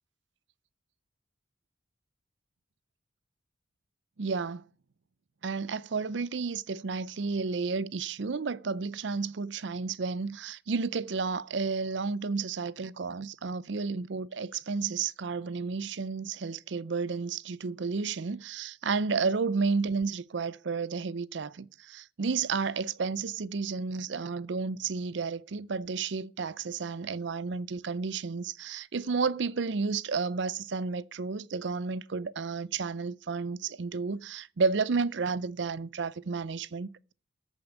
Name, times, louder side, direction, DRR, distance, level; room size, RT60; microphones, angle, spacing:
voice 1, 4.2-4.6 5.4-37.1, right 4 dB, 65° right, 0.5 m, -32 dB
14.0 x 5.3 x 7.9 m
head